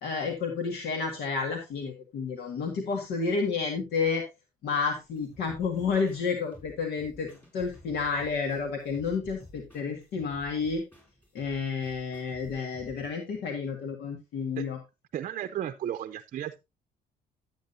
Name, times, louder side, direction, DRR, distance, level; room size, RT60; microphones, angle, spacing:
voice 1, 0.0-4.2 4.6-10.8 11.3-14.8, left 5 dB, 75° left, 4 dB, 1.9 m, -30 dB
sound 1, 5.0-13.1, left 1 dB, 10° left, 6.4 m, -52 dB
voice 2, 15.1-16.6, right 11 dB, 50° right, 10 dB, 0.6 m, -34 dB
11.5 x 8.9 x 2.7 m, 0.25 s
cardioid pair, 110°, 17 cm